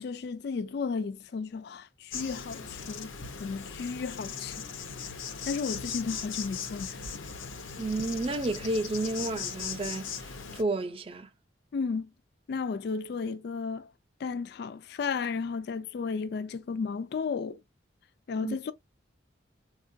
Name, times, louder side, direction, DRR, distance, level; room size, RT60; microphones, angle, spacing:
voice 1, 0.0-4.6 5.4-7.0 11.7-12.1 12.5-13.9 14.2-17.6 18.3-18.7, left 5 dB, 55° left, 0.3 m, -33 dB
Insect, 2.1-10.6, left 6 dB, 85° left, 0.7 m, -39 dB
voice 2, 7.8-11.3 18.4-18.6, right 2 dB, 30° right, 0.5 m, -31 dB
4.4 x 2.4 x 2.6 m
head